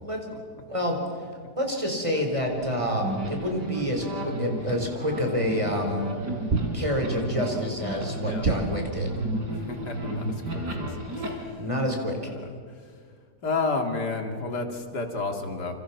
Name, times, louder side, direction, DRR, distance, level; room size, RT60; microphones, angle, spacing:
voice 1, 0.7-1.0 1.6-6.1 6.7-9.1 11.6-12.3, equal, 20° right, 2 dB, 4.5 m, -28 dB
sound 1, 2.3-11.3, right 1 dB, 80° right, 5.0 m, -33 dB
sound 2, 6.5-7.3 8.4-9.2, right 4 dB, 45° right, 1.3 m, -28 dB
voice 2, 9.5-11.6 12.2-12.8 13.4-15.8, left 3 dB, 75° left, 5 dB, 2.9 m, -32 dB
28.0 x 28.0 x 5.9 m, 2.1 s
omnidirectional pair, 1.8 m